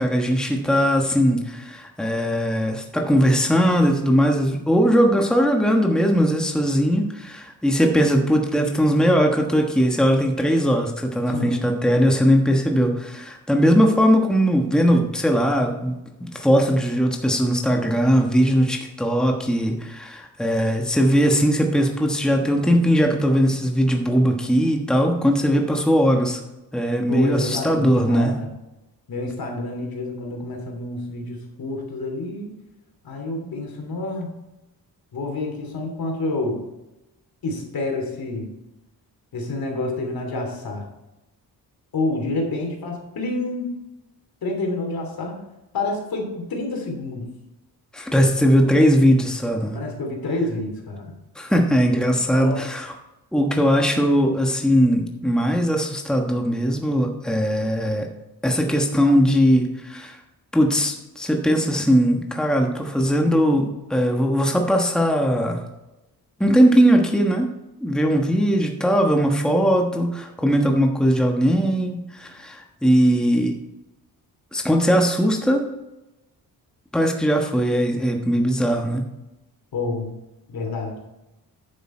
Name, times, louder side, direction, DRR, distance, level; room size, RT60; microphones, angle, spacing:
voice 1, 0.0-26.4 26.7-28.4 47.9-49.8 51.3-52.9 53.3-58.1 58.4-60.2 60.5-65.6 66.4-67.5 67.8-73.6 74.5-75.7 76.9-79.0, equal, ahead, 2 dB, 1.3 m, -19 dB
voice 2, 11.3-11.9 27.1-28.5 29.1-32.5 33.0-34.4 35.1-36.6 37.4-38.5 39.3-40.9 41.9-43.7 44.4-45.4 45.7-47.3 49.7-51.1 52.3-52.6 79.7-80.1 80.5-81.0, left 2 dB, 65° left, 2 dB, 3.0 m, -28 dB
9.8 x 7.0 x 4.4 m, 0.96 s
cardioid pair, 75°, 38 cm